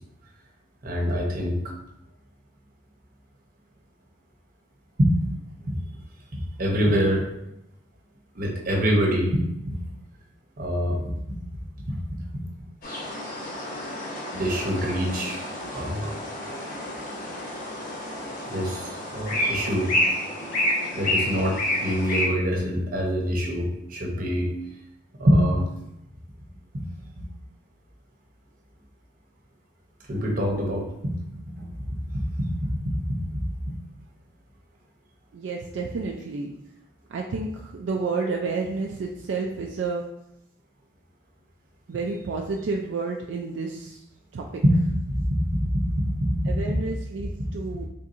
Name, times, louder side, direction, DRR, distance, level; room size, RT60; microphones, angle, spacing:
voice 1, 0.8-1.6 5.0-5.1 5.7-5.8 6.3-7.2 8.3-9.8 10.6-11.4 11.9-12.0 12.3-12.4 14.3-15.5 15.7-16.1 18.5-19.9 20.9-24.5 25.2-25.6 27.2-27.3 30.1-31.1 31.5-31.8 32.4-33.7 44.6-46.8, equal, 50° right, -1 dB, 0.9 m, -25 dB
sound 1, 12.8-22.3, left 1 dB, 45° left, 0.9 m, -29 dB
voice 2, 35.3-36.5 37.1-40.0 41.9-44.0 44.3-44.6 46.5-47.9, right 4 dB, 75° right, 0 dB, 0.4 m, -30 dB
4.2 x 3.6 x 2.6 m, 0.83 s
head